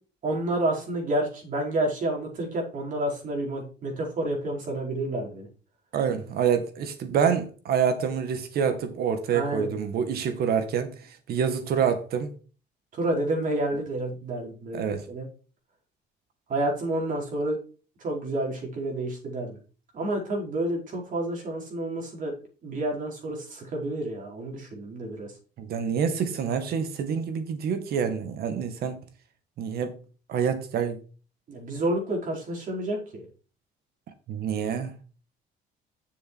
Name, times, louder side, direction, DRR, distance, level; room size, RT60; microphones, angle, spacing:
voice 1, 0.2-5.5 6.1-6.2 9.3-9.7 12.9-15.2 16.5-17.6 18.0-19.6 19.9-22.3 22.6-25.3 31.5-33.3, right 1 dB, 50° right, 4.6 m, -29 dB
voice 2, 5.9-10.9 11.3-12.3 14.7-15.0 25.6-29.0 29.6-30.0 30.3-31.0 34.3-34.9, right 7 dB, 65° right, 2.0 m, -27 dB
7.2 x 6.8 x 4.7 m
cardioid pair, 110°, 17 cm